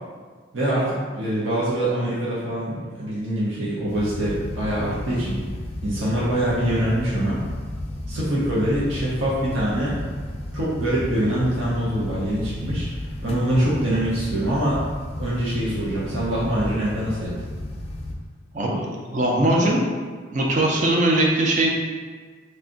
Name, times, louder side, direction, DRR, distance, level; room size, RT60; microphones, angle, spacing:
voice 1, 0.5-5.4 5.8-7.4 8.1-9.9 10.5-12.9 13.2-14.8 15.2-17.4, right 1 dB, 75° right, -8 dB, 0.7 m, -24 dB
sound 1, 3.9-18.1, left 1 dB, 30° left, 0.3 m, -33 dB
voice 2, 18.5-19.8 20.3-21.7, right 1 dB, 40° right, -2 dB, 0.5 m, -20 dB
3.2 x 2.6 x 3.8 m, 1.5 s
head